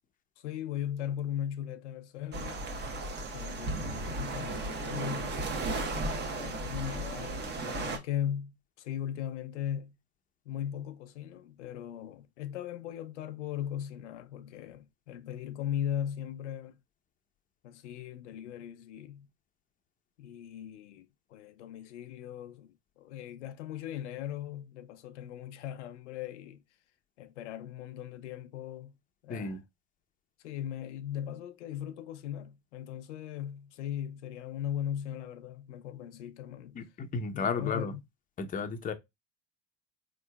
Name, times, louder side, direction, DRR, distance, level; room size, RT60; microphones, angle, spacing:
voice 1, 0.4-2.6 3.3-5.6 6.3-10.0 10.5-16.8 17.6-19.3 20.2-22.7 23.0-26.6 27.2-29.0 29.2-29.6 30.4-36.8 37.3-38.0, left 10 dB, 85° left, 0.6 m, -38 dB
sound 1, 2.3-8.0, right 2 dB, 30° right, 0.9 m, -35 dB
voice 2, 29.3-29.6 36.7-37.9 38.4-38.9, left 4 dB, 25° left, 0.6 m, -33 dB
3.7 x 3.0 x 2.2 m
hypercardioid pair, 95°, 35 cm